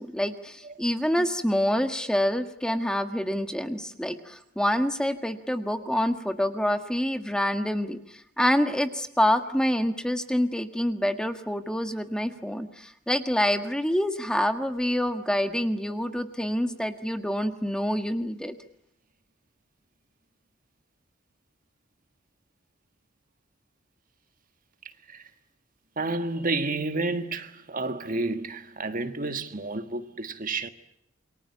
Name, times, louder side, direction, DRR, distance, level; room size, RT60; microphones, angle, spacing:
voice 1, 0.0-18.6, equal, 5° left, 1.6 m, -27 dB
voice 2, 26.0-30.7, right 3 dB, 45° right, 1.6 m, -30 dB
28.5 x 23.5 x 8.3 m
head